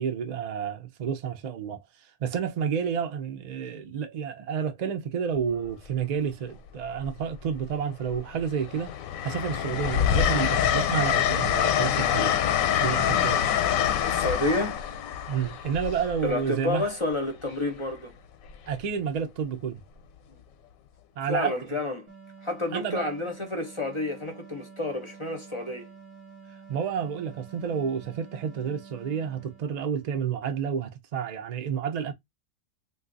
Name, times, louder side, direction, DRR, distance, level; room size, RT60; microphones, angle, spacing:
voice 1, 0.0-1.8 2.2-8.9 9.2-12.3 12.8-13.4 15.3-16.9 18.7-19.8 21.2-21.8 22.7-23.1 26.7-32.1, right 7 dB, 60° right, 0.4 m, -30 dB
Train, 5.4-5.7 7.0-7.7 8.1-16.9 18.5-18.7, left 9 dB, 85° left, 1.0 m, -26 dB
voice 2, 14.1-14.8 16.2-18.1 20.3-20.4 21.2-22.1 22.4-25.9, left 2 dB, 35° left, 0.5 m, -30 dB
sound 1, 22.1-30.2, right 5 dB, 30° right, 0.7 m, -49 dB
2.6 x 2.3 x 3.8 m
omnidirectional pair, 1.4 m